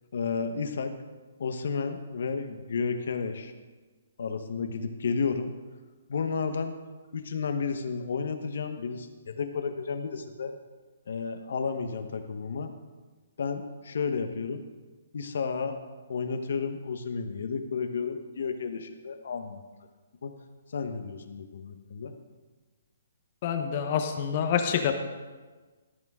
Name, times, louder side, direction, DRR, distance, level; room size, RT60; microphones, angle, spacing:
voice 1, 0.1-0.9 1.4-3.5 4.2-5.5 6.1-6.7 7.1-10.6 11.1-12.7 13.4-14.6 15.1-15.8 16.1-19.6 20.2-20.3 20.7-22.1, left 5 dB, 65° left, 7 dB, 1.0 m, -32 dB
voice 2, 23.4-24.9, left 8 dB, 35° left, 6 dB, 0.9 m, -27 dB
14.5 x 8.7 x 3.7 m, 1.3 s
hypercardioid pair, 165°, 0 cm